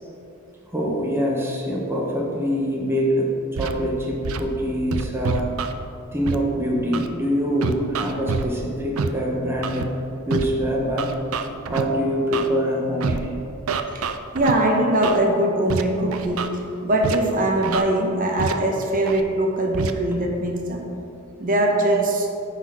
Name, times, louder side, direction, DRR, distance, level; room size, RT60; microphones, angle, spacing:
voice 1, 0.7-5.6 6.1-9.9 10.3-11.1 11.7-13.3, equal, 10° right, -3 dB, 0.8 m, -24 dB
Scratching (performance technique), 3.6-3.7 4.2-4.4 4.9-5.7 6.3-6.4 6.9-7.1 7.6-8.5 9.0-9.1 9.6-9.8 10.3-10.5 11.0-11.8 12.3-12.5 13.0-13.2 13.7-14.5 15.0-15.2 15.7-15.8 16.1-16.5 17.0-17.2 17.6-17.8 18.4-18.5 19.1-19.2 19.7-19.9, right 5 dB, 80° right, 0.5 m, -26 dB
voice 2, 14.3-16.5 16.8-20.8 21.4-22.3, right 1 dB, 40° right, 1 dB, 0.9 m, -21 dB
9.8 x 4.2 x 4.8 m, 2.7 s
head